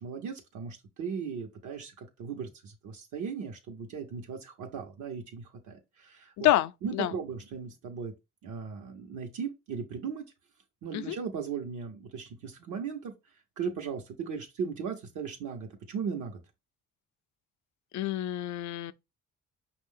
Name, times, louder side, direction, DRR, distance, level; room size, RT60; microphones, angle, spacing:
voice 1, 0.0-6.5 6.8-8.1 8.4-10.2 10.8-13.1 13.6-16.4, right 6 dB, 75° right, 0.9 m, -37 dB
voice 2, 6.4-7.1 10.9-11.2 17.9-18.9, left 14 dB, 70° left, 0.4 m, -28 dB
5.3 x 2.4 x 3.7 m
cardioid pair, 90°, 30 cm